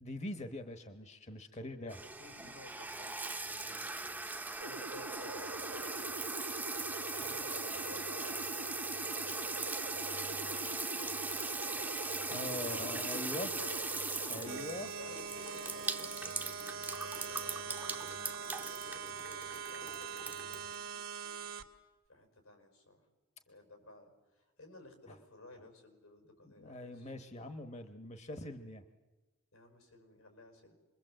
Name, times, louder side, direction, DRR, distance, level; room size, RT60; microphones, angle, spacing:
voice 1, 0.0-2.0 12.3-13.5 14.3-14.9 26.4-28.8, left 1 dB, 35° left, 8 dB, 1.1 m, -43 dB
voice 2, 1.7-6.1 7.1-9.7 10.0-11.8 12.5-13.2 13.6-13.9 14.2-16.4 17.0-21.5 22.1-23.0 23.5-27.1 29.5-30.8, left 2 dB, 90° left, 5 dB, 5.6 m, -55 dB
Shower faucet, 1.9-20.7, right 3 dB, 10° right, 0.8 m, -40 dB
sound 1, 4.6-14.6, right 2 dB, 55° right, 0.9 m, -45 dB
sound 2, 14.4-21.6, right 6 dB, 70° right, 1.7 m, -43 dB
27.0 x 22.0 x 7.8 m, 1.2 s
head